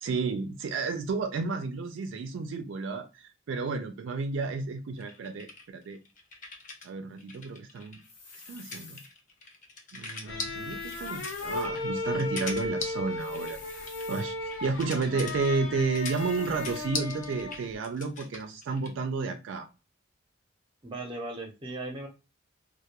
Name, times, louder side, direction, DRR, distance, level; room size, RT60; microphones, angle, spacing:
voice 1, 0.0-6.0 6.8-8.0 8.5-9.0 9.9-13.6 14.1-19.7, right 4 dB, 70° right, 7 dB, 0.3 m, -32 dB
sound 1, 5.0-6.9 7.2-19.0, left 3 dB, 40° left, 0.5 m, -41 dB
sound 2, 8.0-9.1 10.5-11.7 13.2-14.3 15.9-16.9, left 4 dB, 60° left, 1.2 m, -49 dB
sound 3, 10.2-17.7, left 2 dB, 80° left, 0.6 m, -35 dB
voice 2, 20.8-22.1, right 2 dB, 25° right, 3 dB, 0.6 m, -37 dB
2.2 x 2.1 x 2.8 m, 0.29 s
head